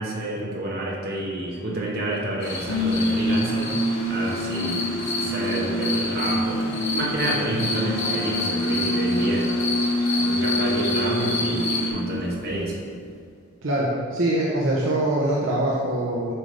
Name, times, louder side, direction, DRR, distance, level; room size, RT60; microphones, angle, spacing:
voice 1, 0.0-3.7 4.1-6.6 6.9-9.5 10.2-12.7, right 1 dB, 45° right, -3 dB, 1.2 m, -29 dB
sound 1, 2.4-11.9, left 3 dB, 50° left, 1.2 m, -30 dB
sound 2, 2.5-12.9, equal, 90° left, 1.1 m, -26 dB
voice 2, 13.6-16.3, right 1 dB, 65° right, -5 dB, 0.8 m, -23 dB
7.5 x 5.2 x 3.3 m, 2.3 s
head